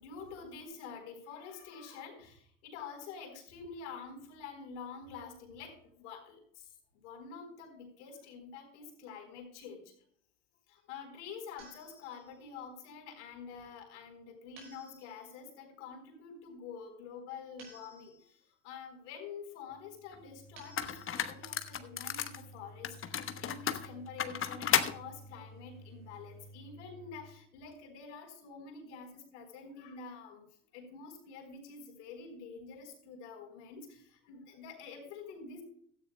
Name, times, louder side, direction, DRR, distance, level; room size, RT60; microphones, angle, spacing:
voice 1, 0.0-9.9 10.7-18.4 18.6-30.5 30.7-35.6, left 5 dB, 80° left, 4 dB, 4.0 m, -47 dB
sound 1, 11.6-12.5 14.6-15.4 17.6-18.5 20.6-21.5, right 1 dB, 85° right, 6.2 m, -57 dB
sound 2, 19.7-27.4, equal, 65° right, 2.9 m, -54 dB
sound 3, 20.1-20.2 20.8-22.4 22.8-25.0, left 9 dB, 35° left, 1.1 m, -33 dB
17.0 x 13.0 x 2.2 m, 0.64 s
hypercardioid pair, 80°, 35 cm